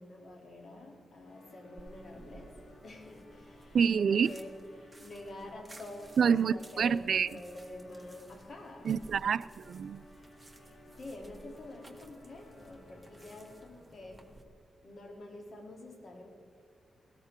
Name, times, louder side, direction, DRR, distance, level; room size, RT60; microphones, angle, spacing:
voice 1, 0.0-9.0 10.4-14.3 14.8-16.3, left 2 dB, 60° left, 1 dB, 3.1 m, -48 dB
sound 1, 1.3-13.9, left 1 dB, 75° left, 3.5 m, -57 dB
sound 2, 1.8-14.4, right 2 dB, 15° right, 1.7 m, -56 dB
voice 2, 3.7-4.3 6.2-7.3 8.8-10.0, right 7 dB, 75° right, 17 dB, 0.4 m, -27 dB
17.5 x 13.5 x 3.7 m, 2.3 s
cardioid pair, 65°, 0 cm